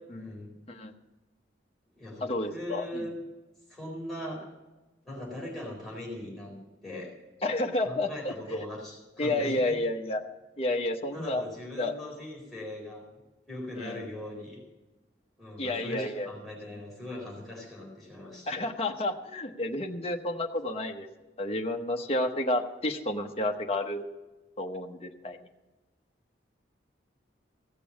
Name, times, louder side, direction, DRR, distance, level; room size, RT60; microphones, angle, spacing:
voice 1, 0.1-0.5 1.9-3.1 3.7-4.5 5.1-6.6 6.8-7.1 7.7-9.8 11.1-13.0 13.5-14.6 15.4-18.6, left 1 dB, ahead, -5 dB, 4.0 m, -40 dB
voice 2, 2.2-3.1 7.4-8.6 9.2-10.2 10.6-11.4 11.8-12.0 13.8-14.0 15.6-16.3 18.5-21.1 21.4-24.1 24.6-25.4, left 1 dB, 35° left, 3 dB, 0.9 m, -30 dB
16.0 x 6.8 x 7.2 m, 1.1 s
head